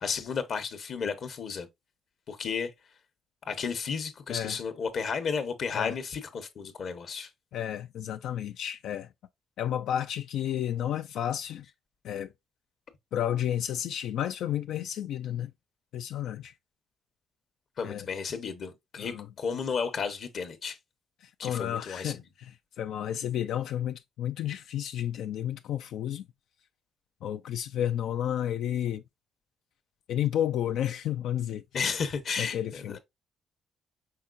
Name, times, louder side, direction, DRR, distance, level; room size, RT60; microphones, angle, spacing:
voice 1, 0.0-1.7 2.3-2.7 3.5-7.3 17.8-20.8 21.4-22.2 31.7-33.0, left 6 dB, 60° left, 0.9 m, -33 dB
voice 2, 4.3-4.6 5.7-6.0 7.5-9.1 9.6-11.7 12.0-12.3 13.1-15.5 15.9-16.5 17.8-18.1 19.0-19.3 21.2-26.2 27.2-29.0 30.1-31.6 32.4-33.0, left 11 dB, 80° left, 0.3 m, -31 dB
5.6 x 3.7 x 2.4 m
cardioid pair, 90°, 0 cm